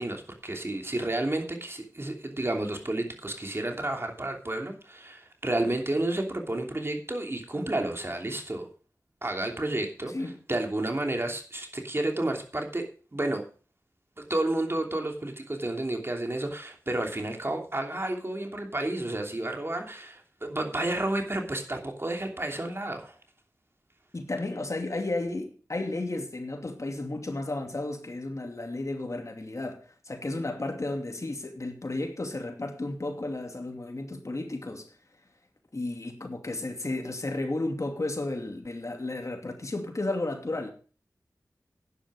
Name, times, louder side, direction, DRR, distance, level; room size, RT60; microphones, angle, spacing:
voice 1, 0.0-8.7 9.2-10.1 10.5-12.8 13.1-13.4 14.2-23.1, right 1 dB, 35° right, 2.9 m, -31 dB
voice 2, 24.1-34.9 35.7-40.7, left 2 dB, 50° left, 2.6 m, -33 dB
11.0 x 10.0 x 5.0 m
cardioid pair, 45°, 7 cm